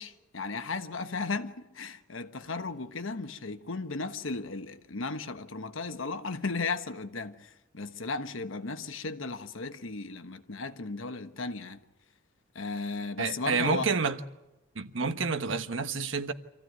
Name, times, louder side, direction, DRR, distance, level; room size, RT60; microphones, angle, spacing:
voice 1, 0.0-11.8 12.5-13.9, left 3 dB, 85° left, 1.3 m, -35 dB
voice 2, 13.2-14.2 14.7-16.3, right 4 dB, 75° right, 1.2 m, -29 dB
26.5 x 15.0 x 9.4 m
head